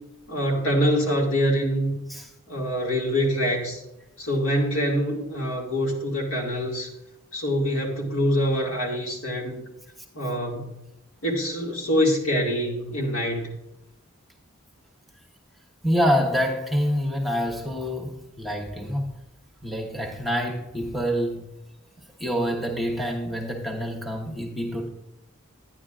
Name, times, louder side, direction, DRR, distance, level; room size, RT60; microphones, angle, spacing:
voice 1, 0.3-1.9 2.5-3.8 4.2-6.9 7.3-9.6 10.1-10.7 11.2-13.5, equal, 75° left, 2.2 m, -25 dB
voice 2, 15.8-19.1 19.6-21.4 22.2-24.9, equal, ahead, 1.1 m, -26 dB
11.5 x 9.9 x 2.4 m
head